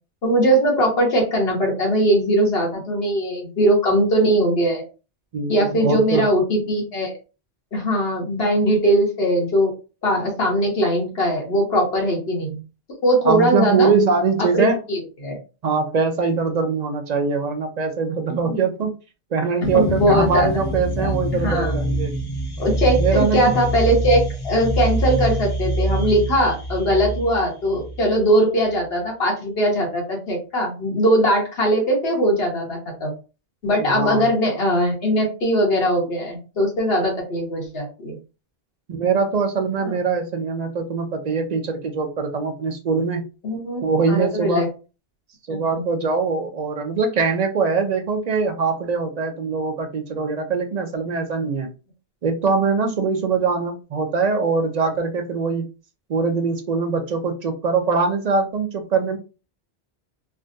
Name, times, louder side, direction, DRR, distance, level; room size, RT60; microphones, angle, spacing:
voice 1, 0.2-4.8 5.5-7.1 7.7-9.7 10.0-12.6 13.0-13.9 14.5-15.4 18.4-18.6 19.7-20.6 21.0-21.1 21.4-21.7 22.6-33.1 33.6-38.1 39.8-40.0 43.4-43.8 44.1-44.7 45.5-45.8, equal, 65° left, 0 dB, 1.3 m, -20 dB
voice 2, 5.3-6.2 13.2-14.8 15.6-18.9 19.3-22.2 23.0-23.5 33.8-34.3 38.9-43.2 43.8-44.7 45.5-51.7 52.2-55.7 56.1-59.2, right 4 dB, 55° right, 5 dB, 0.5 m, -22 dB
sound 1, 19.6-28.2, right 1 dB, 40° left, 0.3 m, -25 dB
3.3 x 2.2 x 2.6 m, 0.33 s
omnidirectional pair, 1.1 m